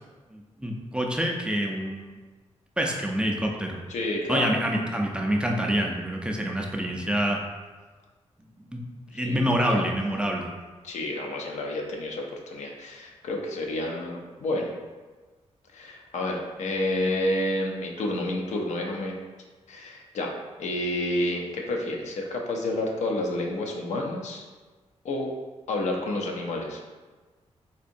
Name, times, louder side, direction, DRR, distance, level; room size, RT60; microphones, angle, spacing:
voice 1, 0.3-2.2 2.8-3.8 4.3-7.4 8.6-8.8 9.1-10.5, equal, 10° right, 0 dB, 0.4 m, -27 dB
voice 2, 3.9-4.5 9.2-9.8 10.8-14.7 15.7-19.1 19.7-20.3 20.6-24.5 25.0-25.3 25.7-26.8, left 1 dB, 85° left, 0 dB, 0.6 m, -29 dB
4.1 x 2.7 x 2.6 m, 1.3 s
wide cardioid pair, 135°, 12 cm